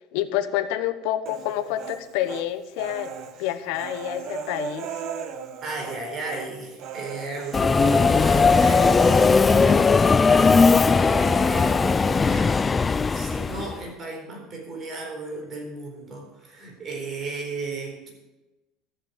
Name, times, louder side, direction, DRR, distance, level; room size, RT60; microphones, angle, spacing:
voice 1, 0.1-3.1 3.4-4.9, left 12 dB, 75° left, 10 dB, 1.1 m, -28 dB
Human voice, 1.3-2.5 2.8-6.0 6.3-6.5 6.8-9.3, right 6 dB, 50° right, 1.2 m, -34 dB
voice 2, 5.6-18.1, right 3 dB, 35° right, 1 dB, 4.3 m, -35 dB
Subway metro underground, 7.5-13.8, left 4 dB, 15° left, 0.3 m, -18 dB
13.5 x 7.5 x 8.2 m, 1.1 s
cardioid pair, 150°, 0 cm